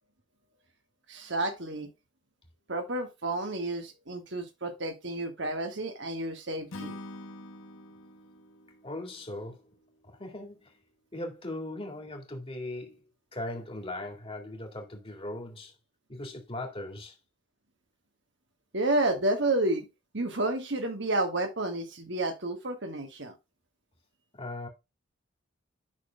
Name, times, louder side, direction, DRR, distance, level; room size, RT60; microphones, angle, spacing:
voice 1, 1.1-1.9 2.7-7.0 18.7-19.9 20.1-23.3, right 2 dB, 55° right, 1.6 m, -30 dB
Acoustic guitar / Strum, 6.7-10.0, left 1 dB, 75° left, 1.0 m, -45 dB
voice 2, 8.8-9.6 10.1-10.7 11.1-13.0 13.3-15.7 16.1-17.2 24.3-24.7, left 1 dB, 25° left, 2.2 m, -39 dB
11.5 x 6.1 x 2.3 m
head